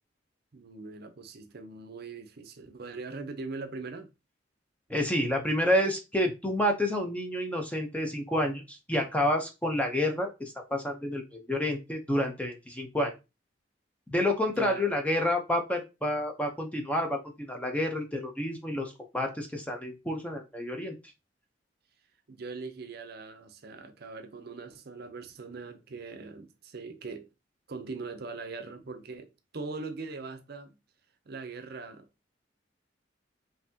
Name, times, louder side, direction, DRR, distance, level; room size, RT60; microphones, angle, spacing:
voice 1, 0.5-4.1 14.6-14.9 22.3-27.3 27.7-30.8 31.3-32.1, right 4 dB, 55° right, 0.6 m, -41 dB
voice 2, 4.9-13.1 14.1-20.9, left 1 dB, 10° left, 0.7 m, -29 dB
5.7 x 2.7 x 2.8 m
head